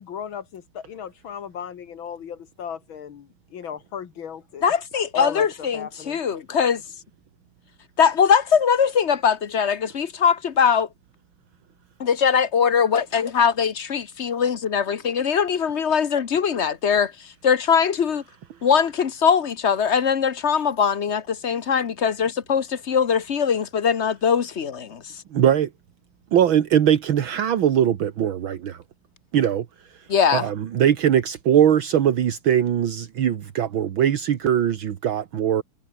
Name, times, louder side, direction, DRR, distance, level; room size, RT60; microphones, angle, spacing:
voice 1, 0.0-4.7 5.1-6.2, left 8 dB, 70° left, 2.2 m, -35 dB
voice 2, 4.6-6.8 8.0-10.9 12.0-17.1 17.4-18.2 18.6-25.0 30.1-30.5, left 7 dB, 45° left, 0.9 m, -21 dB
voice 3, 25.3-25.7 26.3-28.8 29.3-29.6 30.3-35.6, right 10 dB, 70° right, 2.1 m, -20 dB
omnidirectional pair, 2.3 m